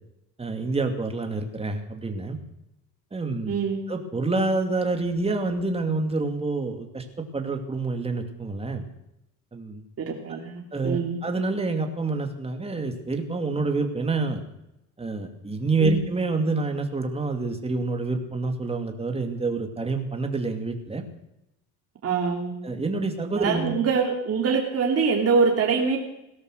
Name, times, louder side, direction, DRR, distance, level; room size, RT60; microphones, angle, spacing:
voice 1, 0.4-2.4 3.1-3.5 3.9-8.8 9.5-9.8 10.3-10.4 10.7-14.4 15.0-21.0 22.6-23.7, right 3 dB, 15° right, 5 dB, 2.5 m, -27 dB
voice 2, 3.5-3.8 10.0-11.2 15.8-16.0 22.0-22.6 23.4-26.0, right 5 dB, 45° right, 0 dB, 2.9 m, -24 dB
17.5 x 12.5 x 6.5 m, 0.86 s
cardioid pair, 95°, 34 cm